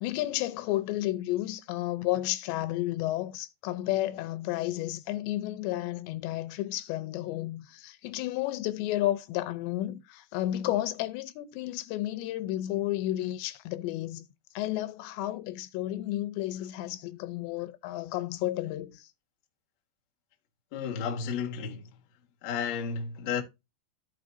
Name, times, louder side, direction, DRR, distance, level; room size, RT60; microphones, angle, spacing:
voice 1, 0.0-14.3 14.6-19.1, left 15 dB, 90° left, 2.9 m, -32 dB
voice 2, 20.7-21.9 22.4-23.4, left 6 dB, 55° left, 2.0 m, -32 dB
14.5 x 5.0 x 2.6 m
omnidirectional pair, 5.1 m